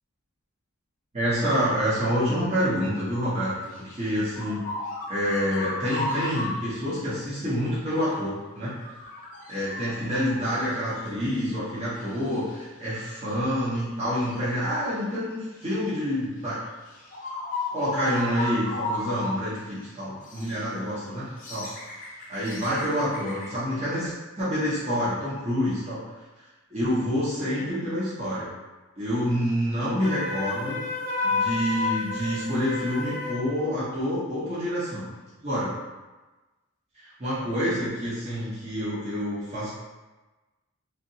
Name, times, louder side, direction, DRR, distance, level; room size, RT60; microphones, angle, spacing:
voice 1, 1.1-4.6 5.1-8.7 9.5-16.6 17.7-21.7 22.3-26.0 26.4-26.5 26.7-28.5 29.0-30.8 31.2-35.1 35.4-35.7 36.9-39.7, equal, 30° right, -11 dB, 0.7 m, -27 dB
sound 1, 3.7-6.7 8.0-8.1 8.4-11.1 11.4-11.5 12.0-12.6 13.3-13.4 14.2-14.4 15.6-15.8 16.5-16.6 16.9-19.4 19.7-19.8 20.2-20.6 21.2-23.6, left 2 dB, 40° left, 0.5 m, -35 dB
Wind instrument woodwind instrument, 30.0-33.4, left 3 dB, 65° right, 0.8 m, -30 dB
2.7 x 2.1 x 2.7 m, 1.2 s
head